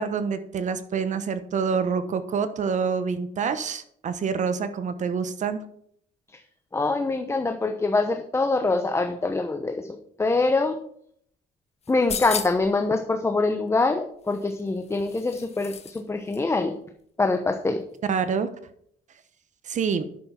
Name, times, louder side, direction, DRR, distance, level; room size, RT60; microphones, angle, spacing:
voice 1, 0.0-5.6 18.0-18.5 19.6-20.1, right 6 dB, 45° right, 11 dB, 1.0 m, -27 dB
voice 2, 6.7-9.9 10.2-10.8 11.9-16.7 17.2-17.8, left 3 dB, 15° left, 6 dB, 0.9 m, -24 dB
sound 1, 11.8-12.8 14.3-16.0 16.3-16.4, left 7 dB, 40° left, 1.2 m, -35 dB
10.5 x 7.0 x 5.8 m, 0.66 s
cardioid pair, 110°, 17 cm